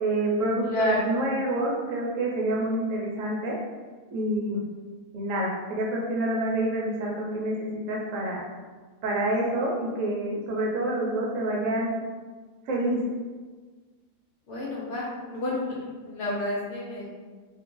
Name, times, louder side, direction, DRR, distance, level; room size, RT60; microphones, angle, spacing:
voice 1, 0.0-3.6 4.1-4.7 5.1-8.4 9.0-11.9 12.7-13.0, right 1 dB, 70° right, -3 dB, 0.9 m, -27 dB
voice 2, 0.6-1.1 14.5-17.1, left 1 dB, 65° left, -5 dB, 0.8 m, -30 dB
2.6 x 2.4 x 3.7 m, 1.4 s
omnidirectional pair, 1.5 m